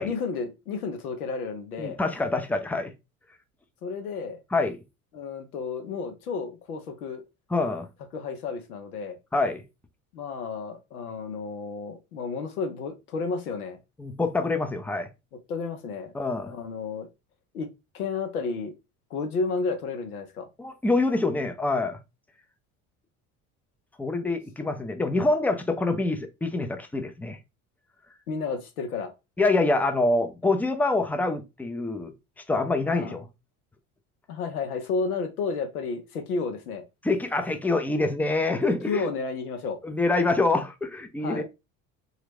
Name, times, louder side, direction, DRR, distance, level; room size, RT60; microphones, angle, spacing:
voice 1, 0.0-2.0 3.8-4.4 5.1-7.2 8.1-9.2 10.1-13.8 15.5-16.1 16.4-17.1 17.5-17.7 17.9-18.7 19.1-20.5 28.3-29.1 32.9-33.2 34.3-36.8 38.9-39.8 41.2-41.4, left 4 dB, 90° left, 0.7 m, -32 dB
voice 2, 1.8-2.9 4.5-4.8 7.5-7.9 9.3-9.6 14.0-15.1 16.1-16.5 20.6-22.0 24.0-27.4 29.4-32.1 32.5-33.3 37.0-39.1 39.8-41.4, left 2 dB, 5° left, 0.4 m, -25 dB
2.9 x 2.4 x 3.3 m
hypercardioid pair, 65°, 43 cm